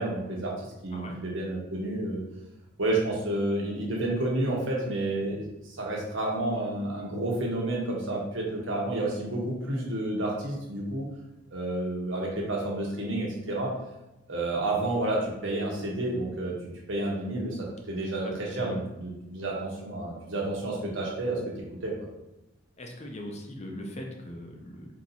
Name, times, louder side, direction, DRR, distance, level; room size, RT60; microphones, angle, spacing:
voice 1, 0.0-2.2 2.8-11.1 11.5-13.7 14.3-16.5 16.9-21.4 21.8-21.9, right 2 dB, 70° right, -2 dB, 1.2 m, -30 dB
voice 2, 18.1-18.8 22.8-24.9, left 1 dB, 35° left, 1 dB, 0.7 m, -40 dB
4.4 x 2.9 x 4.0 m, 0.92 s
head